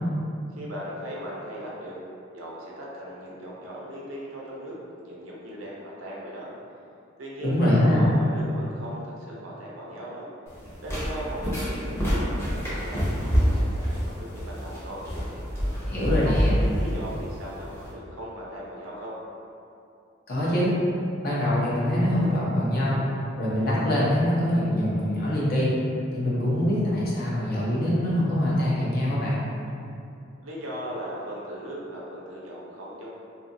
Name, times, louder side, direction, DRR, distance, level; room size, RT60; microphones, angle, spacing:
voice 1, 0.5-2.0 2.3-4.8 5.0-6.5 7.2-10.3 10.8-15.0 16.1-19.2 30.4-33.1, equal, 90° right, -4 dB, 0.6 m, -38 dB
voice 2, 7.4-8.1 15.9-16.5 20.3-20.7 21.2-23.0 23.4-25.7 26.1-29.4, left 1 dB, 50° left, -7 dB, 0.7 m, -24 dB
sound 1, 10.5-17.9, equal, 15° left, 0.5 m, -27 dB
2.7 x 2.4 x 2.6 m, 2.6 s
head